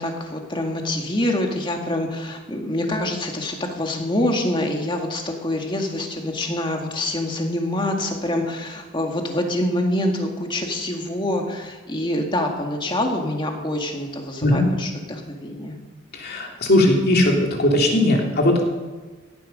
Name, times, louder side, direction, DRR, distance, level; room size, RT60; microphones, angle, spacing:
voice 1, 0.0-15.8, left 1 dB, 25° left, 2 dB, 2.0 m, -25 dB
voice 2, 16.1-18.6, left 1 dB, 50° left, 0 dB, 2.9 m, -18 dB
16.5 x 11.5 x 5.4 m, 1.3 s
head